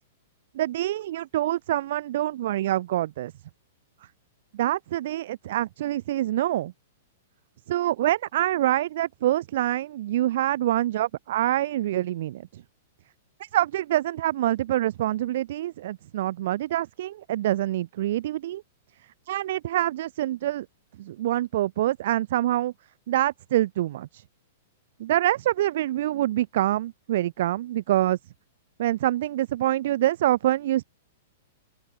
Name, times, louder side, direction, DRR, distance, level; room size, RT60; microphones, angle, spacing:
voice 1, 0.5-3.3 4.5-6.7 7.7-12.6 13.5-18.6 19.3-20.7 21.0-22.7 23.1-24.2 25.0-28.2 28.8-30.8, right 13 dB, 55° right, 2.3 m, -26 dB
open air
supercardioid pair, 170°, 0 cm